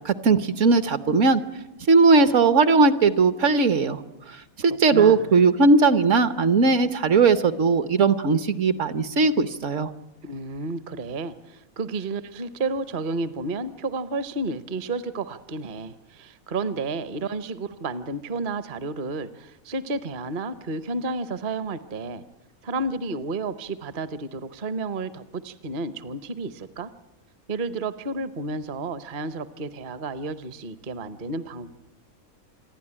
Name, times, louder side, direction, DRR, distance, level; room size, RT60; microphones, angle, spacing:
voice 1, 0.0-1.4 1.9-4.0 4.6-9.9, right 4 dB, 60° right, 12 dB, 1.2 m, -18 dB
voice 2, 4.6-5.4 10.2-22.2 22.6-26.9 27.5-31.7, right 3 dB, 45° right, 13 dB, 0.8 m, -31 dB
27.0 x 11.0 x 9.9 m, 0.96 s
omnidirectional pair, 1.5 m